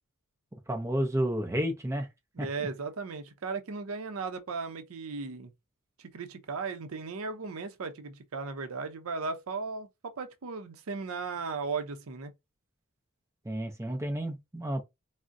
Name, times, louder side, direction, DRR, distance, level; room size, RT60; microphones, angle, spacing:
voice 1, 0.7-2.1 13.5-14.8, equal, 15° right, 0.5 m, -31 dB
voice 2, 2.3-5.5 6.0-12.3, right 4 dB, 65° right, 0.6 m, -36 dB
3.6 x 2.1 x 2.5 m
head